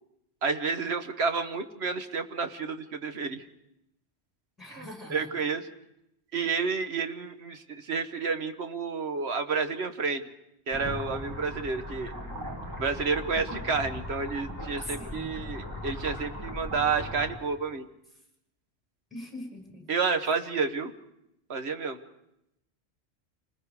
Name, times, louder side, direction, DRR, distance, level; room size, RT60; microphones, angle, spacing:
voice 1, 0.4-3.4 4.7-5.7 6.3-10.2 10.7-12.1 12.8-17.9 19.9-20.9 21.5-22.0, right 5 dB, 75° right, 8 dB, 1.5 m, -30 dB
voice 2, 4.6-5.3 14.9-15.3 19.1-19.9, left 1 dB, ahead, 1 dB, 6.1 m, -42 dB
sound 1, 10.7-17.4, equal, 20° right, 2.5 m, -38 dB
29.0 x 20.0 x 4.9 m, 0.84 s
omnidirectional pair, 1.1 m